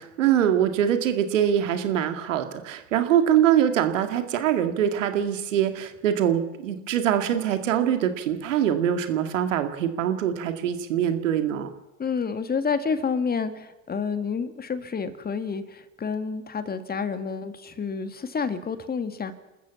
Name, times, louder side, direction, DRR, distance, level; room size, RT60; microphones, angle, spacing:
voice 1, 0.0-11.7, right 10 dB, 75° right, 8 dB, 2.1 m, -23 dB
voice 2, 12.0-19.3, left 5 dB, 25° left, 10 dB, 2.0 m, -29 dB
29.5 x 14.0 x 7.1 m, 1.0 s
hypercardioid pair, 75°, 39 cm